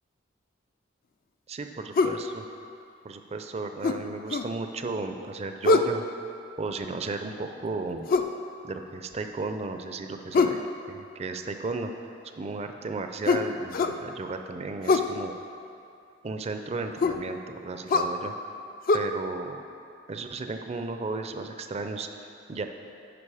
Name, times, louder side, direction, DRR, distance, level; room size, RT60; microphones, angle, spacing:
voice 1, 1.5-2.4 3.0-6.0 6.6-8.1 8.6-10.6 10.9-11.9 12.4-15.3 16.2-18.3 18.9-19.6 20.1-22.7, right 3 dB, 35° right, 6 dB, 0.4 m, -34 dB
sound 1, 2.0-2.2 3.8-4.5 5.6-6.0 8.1-8.4 10.3-10.6 13.3-14.0 14.8-15.1 17.0-17.2 17.9-18.1 18.9-19.0, left 4 dB, 50° left, 0.4 m, -23 dB
9.9 x 5.3 x 4.8 m, 2.6 s
head